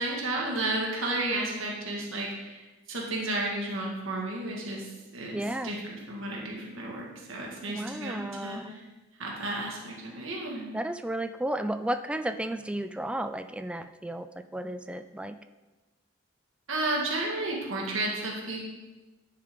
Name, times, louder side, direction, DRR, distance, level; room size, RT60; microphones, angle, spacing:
voice 1, 0.0-2.6 2.9-8.8 9.2-10.7 16.7-18.6, right 2 dB, 85° right, -2 dB, 1.7 m, -32 dB
voice 2, 5.3-5.7 7.7-8.7 10.7-14.3 14.5-15.4, right 1 dB, 5° right, 9 dB, 0.3 m, -33 dB
10.5 x 6.7 x 3.7 m, 1.2 s
head